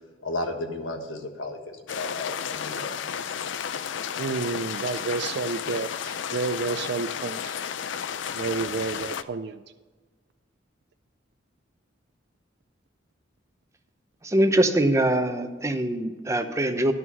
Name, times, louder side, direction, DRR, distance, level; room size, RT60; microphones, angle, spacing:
voice 1, 0.2-2.9, left 2 dB, 85° left, 4 dB, 1.4 m, -33 dB
sound 1, 1.9-9.2, left 7 dB, 70° left, 0.4 m, -32 dB
voice 2, 4.2-7.5 8.3-9.6, right 4 dB, 60° right, 9 dB, 0.4 m, -30 dB
voice 3, 14.2-16.9, right 1 dB, 15° right, 7 dB, 0.7 m, -23 dB
11.0 x 6.1 x 6.1 m, 1.4 s
head